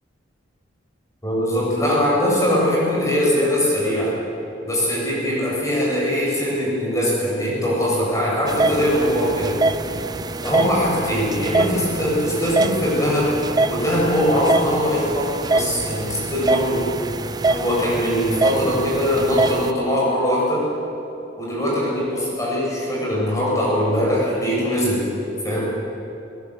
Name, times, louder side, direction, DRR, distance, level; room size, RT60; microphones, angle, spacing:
voice 1, 1.2-4.2 4.6-9.6 10.4-13.4 13.7-16.8 17.5-20.7 21.4-25.1 25.4-25.7, equal, 15° left, -5 dB, 7.5 m, -21 dB
sound 1, 8.5-19.7, right 2 dB, 20° right, 0.6 m, -24 dB
29.0 x 18.0 x 8.1 m, 2.9 s
head